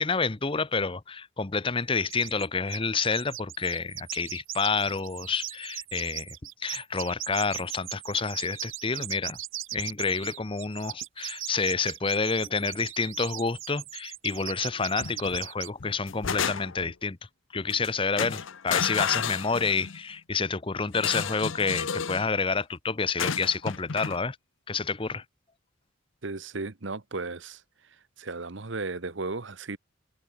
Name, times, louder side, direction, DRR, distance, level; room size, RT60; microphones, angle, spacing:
voice 1, 0.0-6.3 6.6-9.4 9.7-17.2 17.5-24.4 24.7-25.2, left 4 dB, 25° left, 0.7 m, -29 dB
sound 1, 2.0-2.5 2.7-15.7, right 13 dB, 80° right, 4.0 m, -39 dB
sound 2, 15.0-15.4 15.8-16.9 17.7-17.9 18.2-20.0 20.9-22.3 23.2-24.2, left 7 dB, 75° left, 0.8 m, -31 dB
voice 2, 26.2-27.6 28.2-29.8, right 3 dB, 65° right, 1.1 m, -35 dB
head